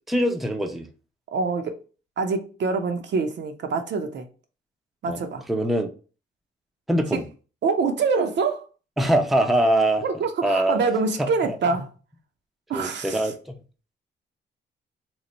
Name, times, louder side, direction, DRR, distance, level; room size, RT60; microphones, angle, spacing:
voice 1, 0.1-0.9 5.1-5.2 5.5-5.9 6.9-7.2 9.0-10.0 10.4-10.8 11.2-11.6 12.7-13.4, right 1 dB, ahead, 0.5 m, -22 dB
voice 2, 1.3-1.7 2.2-4.3 5.0-5.4 7.1-7.2 7.6-8.6 10.0-11.9 12.7-13.2, right 4 dB, 65° right, 0.6 m, -25 dB
3.0 x 2.1 x 3.9 m
cardioid pair, 75°, 20 cm